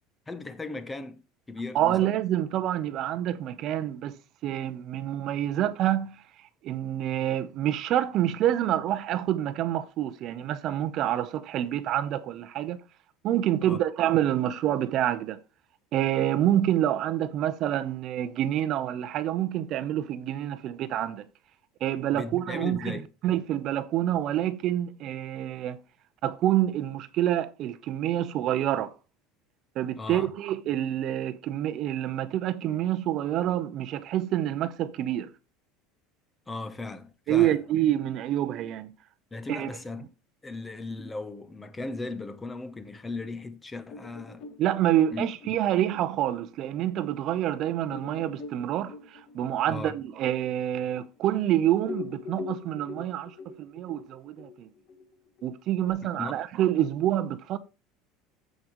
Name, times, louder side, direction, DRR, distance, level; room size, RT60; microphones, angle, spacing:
voice 1, 0.3-1.2 1.5-2.1 13.6-13.8 22.1-23.1 30.0-30.3 36.5-37.6 39.3-40.1 40.4-44.4 45.1-45.3 49.7-50.0 56.1-56.3, left 3 dB, 10° left, 0.8 m, -37 dB
voice 2, 1.7-6.2 6.6-12.8 13.2-15.4 15.9-21.3 21.8-25.8 26.2-28.9 29.8-35.3 37.3-38.9 39.5-39.7 44.6-54.7 55.4-57.6, right 12 dB, 45° right, 0.8 m, -27 dB
sound 1, 43.9-47.0 47.4-47.5 47.9-51.5 51.8-55.9, left 4 dB, 50° left, 1.8 m, -43 dB
14.5 x 5.1 x 3.0 m
supercardioid pair, 140°, 0 cm